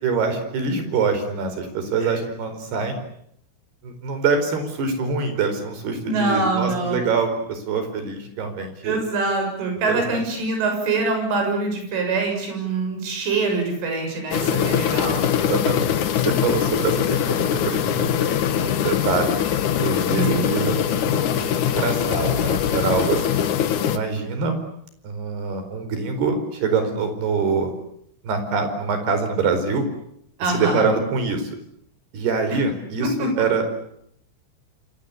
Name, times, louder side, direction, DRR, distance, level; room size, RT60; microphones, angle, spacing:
voice 1, 0.0-3.0 3.8-9.0 9.9-10.2 15.1-15.9 16.2-19.4 19.8-23.4 23.8-24.6 25.0-27.7 28.2-29.9 30.4-31.5 32.1-33.7, right 4 dB, 55° right, 8 dB, 6.4 m, -25 dB
voice 2, 6.1-7.0 8.8-15.2 20.1-20.5 30.4-30.9 33.0-33.3, right 3 dB, 70° right, 4 dB, 9.4 m, -24 dB
sound 1, 14.3-24.0, left 9 dB, 75° left, 1.8 m, -22 dB
28.0 x 24.5 x 8.5 m, 0.72 s
omnidirectional pair, 5.8 m